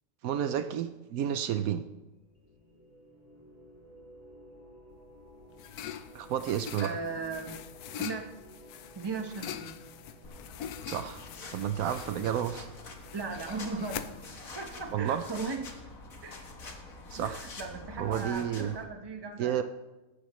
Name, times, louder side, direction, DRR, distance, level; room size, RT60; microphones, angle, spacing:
voice 1, 0.2-1.8 6.1-6.9 10.9-11.2 11.5-12.7 14.9-15.2 17.1-17.4 18.0-18.7 19.4-19.6, right 9 dB, 75° right, 10 dB, 1.0 m, -31 dB
sound 1, 1.9-17.3, equal, 30° left, 3.0 m, -56 dB
sound 2, 5.0-15.5, left 9 dB, 85° left, 1.1 m, -44 dB
voice 2, 6.8-7.6 7.9-8.2 8.9-9.7 13.1-14.0 14.5-15.7 16.2-16.5 17.1-19.6, right 4 dB, 20° right, 4 dB, 1.0 m, -37 dB
sound 3, 10.2-18.8, left 3 dB, 65° left, 1.9 m, -46 dB
16.5 x 13.5 x 3.1 m, 1.1 s
omnidirectional pair, 1.6 m